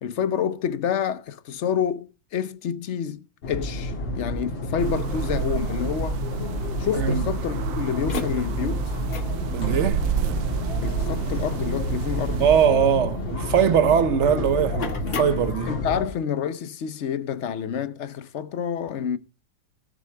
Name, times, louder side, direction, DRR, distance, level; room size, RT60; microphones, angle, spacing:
voice 1, 0.0-6.2 6.8-8.9 10.8-12.5 15.7-19.2, left 8 dB, 65° left, 0.7 m, -28 dB
sound 1, 3.4-16.1, left 2 dB, 80° left, 3.0 m, -30 dB
sound 2, 4.8-12.7, right 10 dB, 80° right, 1.5 m, -30 dB
voice 2, 6.9-7.3 9.5-10.0 12.4-15.7, right 8 dB, 55° right, 0.8 m, -21 dB
sound 3, 7.9-16.1, left 4 dB, 50° left, 1.8 m, -36 dB
17.5 x 7.5 x 3.3 m
omnidirectional pair, 2.0 m